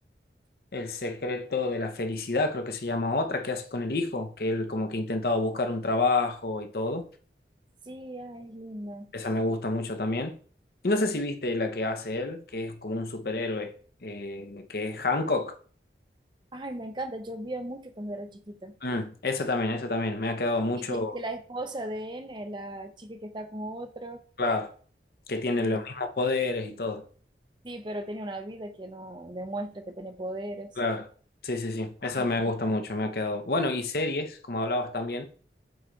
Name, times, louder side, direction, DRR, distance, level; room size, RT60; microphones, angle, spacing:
voice 1, 0.7-7.1 9.1-10.4 10.8-13.7 14.0-15.6 18.8-21.2 24.4-24.7 25.3-27.0 30.8-31.1 31.4-35.3, left 2 dB, 55° left, 0.8 m, -29 dB
voice 2, 7.9-9.1 16.5-18.8 20.7-24.2 25.6-25.8 27.6-30.7 32.2-32.3, right 1 dB, 25° right, 0.6 m, -37 dB
7.8 x 3.1 x 3.9 m
head